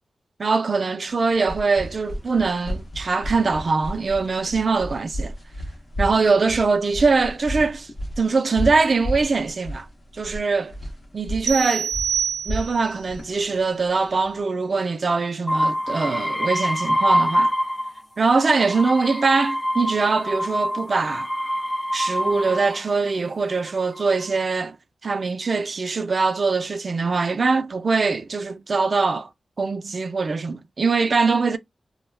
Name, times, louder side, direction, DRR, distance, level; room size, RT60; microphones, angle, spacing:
voice 1, 0.4-5.3 6.0-7.9 8.2-9.9 10.1-10.7 11.1-11.9 12.5-17.5 18.2-21.3 21.9-24.8 25.0-29.3 29.6-31.6, right 4 dB, 55° right, 0.4 m, -22 dB
sound 1, 1.1-14.4, equal, 55° left, 0.8 m, -33 dB
sound 2, 11.4-13.0, right 7 dB, 80° right, 0.8 m, -26 dB
sound 3, 15.5-18.0 18.4-22.9 23.7-24.2, equal, 30° left, 0.4 m, -25 dB
2.2 x 2.1 x 3.1 m
cardioid pair, 65°, 0 cm